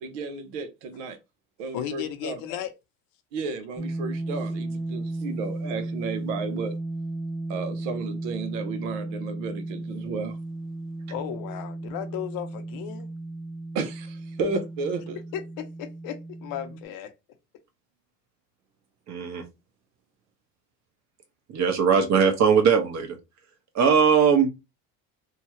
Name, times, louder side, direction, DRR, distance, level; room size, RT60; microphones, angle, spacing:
voice 1, 0.0-1.2 1.6-2.4 3.3-6.7 7.5-10.4 13.7-15.2, right 4 dB, 80° right, 0.8 m, -33 dB
voice 2, 1.7-2.7 11.1-13.1 15.3-17.1, left 10 dB, 65° left, 0.7 m, -35 dB
sound 1, 3.8-16.9, right 2 dB, 5° right, 0.6 m, -34 dB
voice 3, 19.1-19.4 21.5-23.1 23.7-24.5, right 6 dB, 50° right, 1.0 m, -20 dB
2.8 x 2.3 x 2.9 m
supercardioid pair, 90°, 36 cm